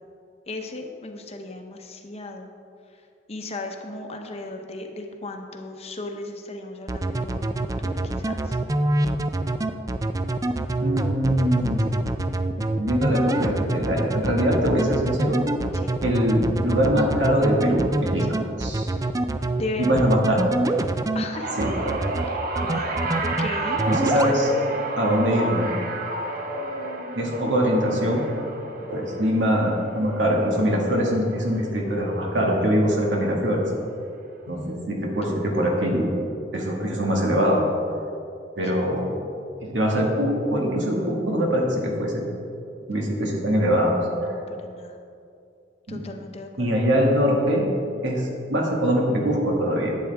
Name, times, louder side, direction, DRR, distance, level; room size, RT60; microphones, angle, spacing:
voice 1, 0.5-2.5 3.3-8.6 15.7-15.9 19.6-20.1 21.1-21.5 22.2-23.8 24.2-24.4 28.8-28.9 35.0-35.1 38.7-38.8 44.1-45.0 45.9-46.8, left 2 dB, 35° left, 4 dB, 0.8 m, -36 dB
sound 1, 6.9-21.2 21.6-22.2 22.6-23.5 23.8-24.3, right 2 dB, 20° right, 0.3 m, -25 dB
voice 2, 10.8-11.9 12.7-15.4 16.0-19.0 19.8-20.4 21.6-21.7 23.9-24.5 25.0-25.8 27.2-28.2 28.9-33.6 34.5-36.1 36.5-37.6 38.6-39.1 39.6-42.2 42.9-44.0 45.9-46.0 46.6-47.7 48.0-49.9, equal, 85° right, -1 dB, 1.9 m, -23 dB
sound 2, 21.3-31.8 32.1-32.5 33.6-33.7, right 2 dB, 55° right, 0.9 m, -31 dB
11.5 x 8.4 x 3.5 m, 2.5 s
head